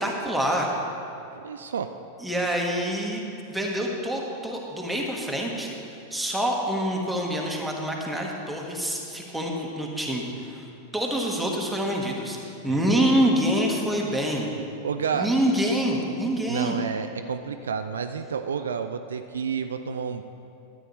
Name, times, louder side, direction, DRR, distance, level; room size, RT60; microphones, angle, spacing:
voice 1, 0.0-0.7 2.2-3.2 3.5-12.4 12.6-14.5 15.1-16.8, equal, 5° right, -1 dB, 1.4 m, -26 dB
voice 2, 1.3-1.9 12.7-12.9 14.8-15.3 16.5-20.2, right 6 dB, 65° right, 8 dB, 0.3 m, -30 dB
12.5 x 9.1 x 3.2 m, 2.7 s
figure-of-eight pair, 90°, 0 cm